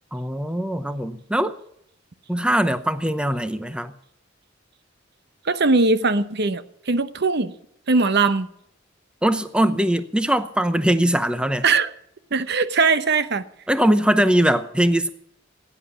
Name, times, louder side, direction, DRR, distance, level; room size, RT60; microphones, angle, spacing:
voice 1, 0.1-1.5 2.3-3.9 9.2-11.6 13.7-15.1, right 1 dB, 5° right, 0.7 m, -21 dB
voice 2, 5.4-7.5 7.9-8.5 11.6-11.9 12.3-13.4, right 3 dB, 60° right, 0.9 m, -20 dB
16.5 x 10.0 x 7.0 m
head